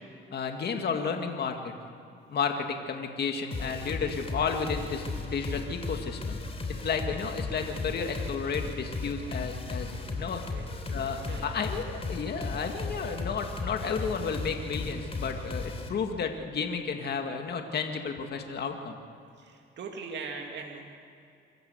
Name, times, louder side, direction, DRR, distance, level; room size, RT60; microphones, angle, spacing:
voice 1, 0.3-1.7 2.3-6.4 6.8-10.4 10.9-19.0, left 5 dB, 55° left, 4 dB, 2.1 m, -32 dB
sound 1, 3.5-15.9, left 3 dB, 30° left, 3.3 m, -36 dB
voice 2, 19.4-20.9, right 4 dB, 65° right, 2 dB, 2.5 m, -40 dB
25.5 x 14.5 x 8.2 m, 2.5 s
cardioid pair, 90°, 20 cm